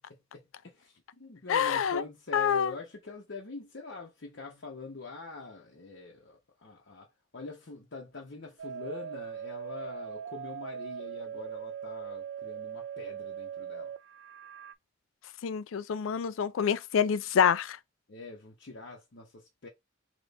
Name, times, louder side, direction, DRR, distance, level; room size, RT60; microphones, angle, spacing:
voice 1, 0.3-13.9 18.1-19.7, left 3 dB, 60° left, 0.8 m, -44 dB
voice 2, 1.5-2.0 2.3-2.7 15.4-17.8, left 7 dB, 85° left, 0.4 m, -26 dB
sound 1, 8.6-14.7, right 8 dB, 65° right, 0.3 m, -40 dB
3.4 x 3.0 x 3.9 m
head